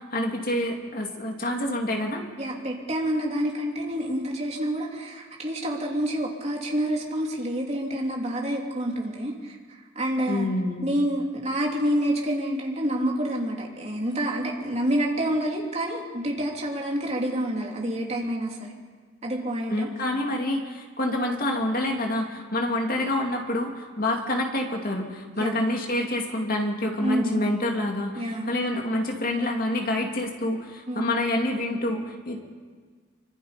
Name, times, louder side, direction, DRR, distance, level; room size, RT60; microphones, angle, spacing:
voice 1, 0.0-2.2 10.3-10.9 19.7-32.4, left 1 dB, 45° left, 2 dB, 2.7 m, -27 dB
voice 2, 2.4-9.6 9.9-10.5 10.8-18.8 19.2-19.9 25.4-25.6 27.0-27.7 28.2-28.5 30.9-31.1, right 1 dB, 30° right, -1 dB, 3.3 m, -28 dB
25.5 x 25.0 x 5.3 m, 1.5 s
head